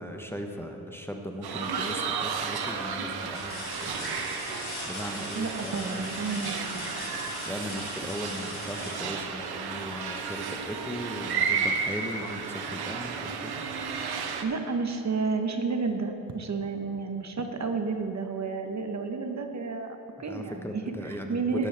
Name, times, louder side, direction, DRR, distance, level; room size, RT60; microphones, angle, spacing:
voice 1, 0.0-6.1 6.5-6.6 7.4-13.6 20.2-21.7, equal, 5° left, 3 dB, 0.9 m, -38 dB
sound 1, 1.4-14.4, right 5 dB, 70° right, 1.0 m, -33 dB
sound 2, 1.5-2.0 2.6-2.7 3.3-10.0 11.8-11.9 12.4-13.4 14.7-14.8, left 3 dB, 70° left, 2.7 m, -41 dB
voice 2, 5.3-6.9 14.4-19.9 20.2-21.7, right 4 dB, 45° right, 5 dB, 1.0 m, -31 dB
17.5 x 7.2 x 3.4 m, 2.8 s
cardioid pair, 65°, 40 cm